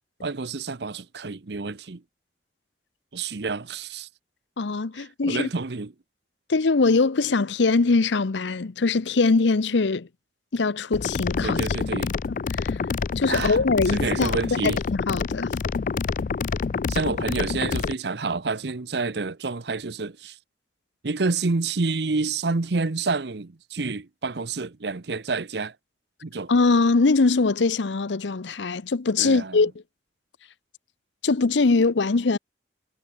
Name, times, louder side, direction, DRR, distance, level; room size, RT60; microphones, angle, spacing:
voice 1, 0.2-2.0 3.1-4.1 5.0-5.9 11.4-12.1 13.3-13.6 13.9-14.8 16.9-20.4 21.0-25.7 26.2-26.5 29.2-29.6, right 3 dB, 65° right, 0.8 m, -28 dB
voice 2, 4.6-5.5 6.5-10.1 10.5-11.6 12.1-12.2 12.6-12.8 13.2-14.4 14.6-15.5 26.5-29.7 31.2-32.4, left 3 dB, 80° left, 0.7 m, -22 dB
sound 1, 10.9-17.9, left 5 dB, 45° left, 0.3 m, -27 dB
head